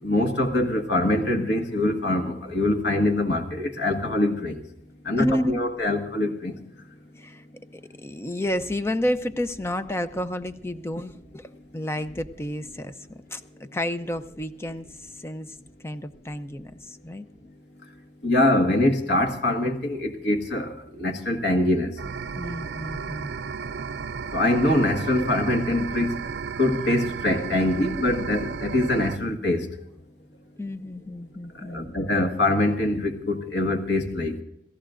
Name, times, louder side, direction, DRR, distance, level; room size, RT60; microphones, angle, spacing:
voice 1, 0.0-4.6 5.0-6.5 18.2-22.0 24.3-26.2 26.6-29.7 31.6-34.4, left 1 dB, 75° left, 5 dB, 1.6 m, -24 dB
voice 2, 5.2-5.6 7.2-7.4 7.7-15.6 15.8-17.3 22.3-23.3 30.6-31.9, left 1 dB, 15° left, 10 dB, 0.6 m, -31 dB
sound 1, 22.0-29.2, right 6 dB, 70° right, 0.4 m, -34 dB
29.5 x 14.5 x 2.5 m, 0.77 s
head